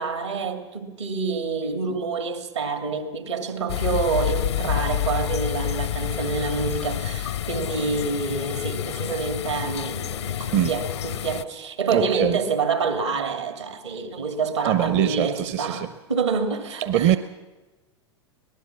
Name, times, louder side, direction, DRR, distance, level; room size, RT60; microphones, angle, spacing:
voice 1, 0.0-17.2, right 4 dB, 80° right, 7 dB, 2.5 m, -27 dB
sound 1, 3.7-11.4, left 12 dB, 70° left, 0.7 m, -28 dB
voice 2, 11.9-12.4 14.6-15.9 16.9-17.2, right 12 dB, 45° right, 13 dB, 0.7 m, -22 dB
24.0 x 19.0 x 6.1 m, 1.2 s
figure-of-eight pair, 90°, 15 cm